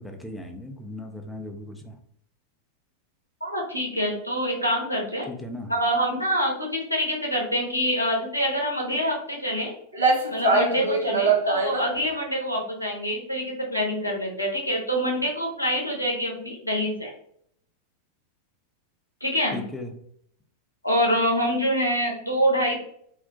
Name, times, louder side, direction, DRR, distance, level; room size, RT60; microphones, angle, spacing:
voice 1, 0.0-2.0 5.3-5.7 19.5-19.9, left 1 dB, ahead, 3 dB, 0.4 m, -37 dB
voice 2, 3.4-5.3 5.7-9.7 10.3-17.1 19.2-19.6 20.8-22.8, equal, 85° left, -1 dB, 0.6 m, -26 dB
sound 1, 9.6-9.7 9.9-11.9, right 3 dB, 75° right, 0.5 m, -22 dB
2.4 x 2.1 x 2.4 m, 0.67 s
figure-of-eight pair, 90°, 0 cm